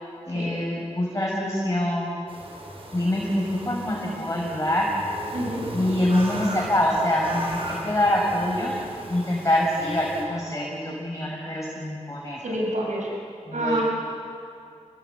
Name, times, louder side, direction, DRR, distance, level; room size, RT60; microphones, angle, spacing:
voice 1, 0.3-2.1 2.9-4.9 5.7-8.7 9.1-12.5 13.5-13.8, left 1 dB, 25° left, -3 dB, 5.6 m, -25 dB
sound 1, 2.3-10.2, right 1 dB, 50° right, 5.8 m, -37 dB
voice 2, 5.3-5.6 12.4-13.1 13.5-13.8, right 1 dB, 80° right, -2 dB, 6.6 m, -27 dB
29.0 x 22.0 x 8.4 m, 2.6 s
wide cardioid pair, 80°, 12 cm